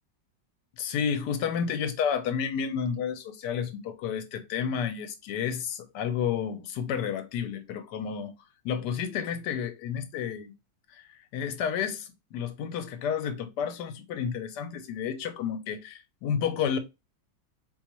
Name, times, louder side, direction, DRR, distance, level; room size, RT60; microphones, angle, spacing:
voice 1, 0.8-8.3 8.6-10.5 10.9-11.0 11.3-16.8, left 7 dB, 75° left, 1.1 m, -31 dB
4.0 x 2.3 x 2.9 m
omnidirectional pair, 1.9 m